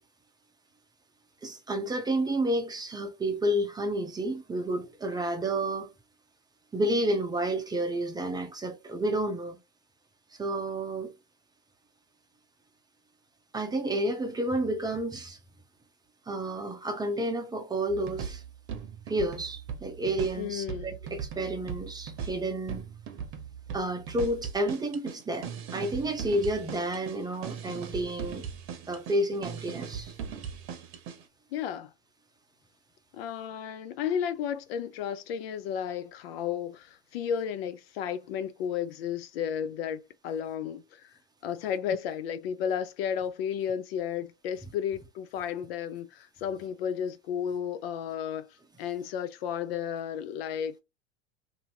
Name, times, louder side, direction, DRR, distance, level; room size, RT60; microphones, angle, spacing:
voice 1, 1.4-5.9 6.7-9.6 10.4-11.1 13.5-15.4 16.3-18.4 19.1-22.8 23.7-28.4 28.9-30.1, right 1 dB, 10° right, 0.6 m, -30 dB
sound 1, 17.9-31.2, right 7 dB, 40° right, 0.8 m, -39 dB
voice 2, 20.4-21.0 31.5-31.9 33.1-50.8, left 8 dB, 60° left, 0.5 m, -33 dB
2.7 x 2.6 x 2.8 m
hypercardioid pair, 100°, 34 cm